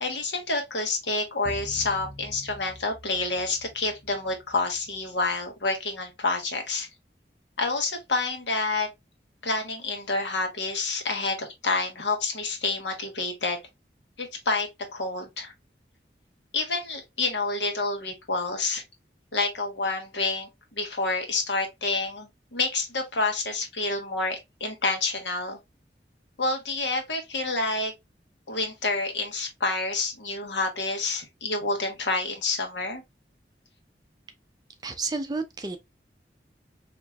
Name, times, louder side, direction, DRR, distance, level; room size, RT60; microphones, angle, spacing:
voice 1, 0.0-6.9 7.6-8.9 9.4-13.6 14.2-15.5 16.5-18.8 19.3-25.6 26.4-27.9 28.5-33.0, left 3 dB, 90° left, 1.3 m, -28 dB
sound 1, 1.5-5.9, equal, 5° left, 0.8 m, -45 dB
voice 2, 34.8-35.8, right 3 dB, 20° right, 0.5 m, -31 dB
4.3 x 2.9 x 2.3 m
head